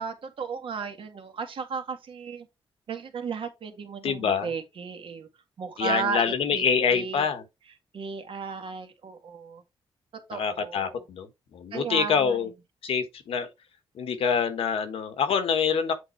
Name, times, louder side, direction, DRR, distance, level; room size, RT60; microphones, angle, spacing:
voice 1, 0.0-2.5 2.9-5.3 5.6-6.6 6.9-7.3 7.9-9.6 10.1-10.9 11.7-12.4, right 5 dB, 65° right, 1.7 m, -34 dB
voice 2, 4.0-4.5 5.8-7.4 10.3-12.5 12.8-13.5 13.9-15.9, left 6 dB, 80° left, 1.3 m, -26 dB
7.9 x 3.7 x 4.4 m
cardioid pair, 110°, 10 cm